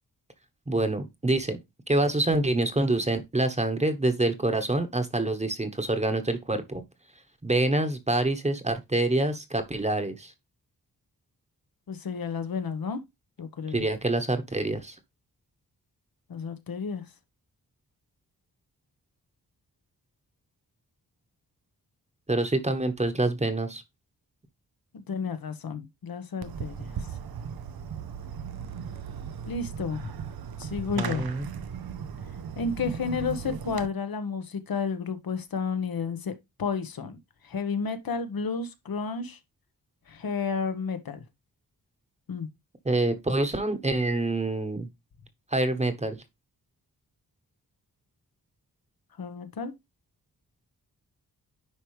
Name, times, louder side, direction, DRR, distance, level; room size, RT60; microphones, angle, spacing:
voice 1, 0.7-1.6 1.9-6.8 7.4-10.3 13.7-15.0 22.3-23.8 31.0-31.5 42.8-44.9 45.5-46.2, right 2 dB, 20° right, 1.1 m, -26 dB
voice 2, 11.9-13.0 13.4-13.8 16.3-17.0 24.9-26.9 29.4-30.1 30.6-31.3 32.5-36.3 36.6-37.2 37.4-39.4 40.1-41.2 42.3-42.5 49.2-49.7, left 5 dB, 70° left, 1.2 m, -31 dB
Fireworks, 26.4-33.9, right 7 dB, 80° right, 0.8 m, -37 dB
10.0 x 4.7 x 3.2 m
wide cardioid pair, 100°, 36 cm